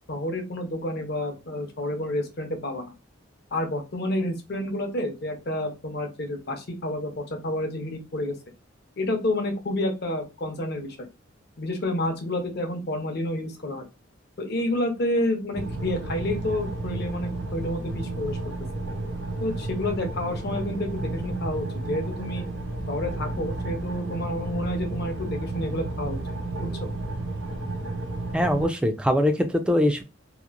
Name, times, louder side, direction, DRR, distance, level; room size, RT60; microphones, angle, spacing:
voice 1, 0.1-2.9 3.5-8.4 9.0-11.1 11.6-13.9 14.4-18.4 19.4-22.4 22.9-26.2 26.6-26.9, left 1 dB, 55° left, 4 dB, 0.7 m, -29 dB
sound 1, 15.5-28.7, right 2 dB, 85° right, 1.2 m, -32 dB
voice 2, 28.3-30.0, left 1 dB, 5° right, 6 dB, 0.3 m, -22 dB
2.9 x 2.4 x 2.4 m, 0.28 s
head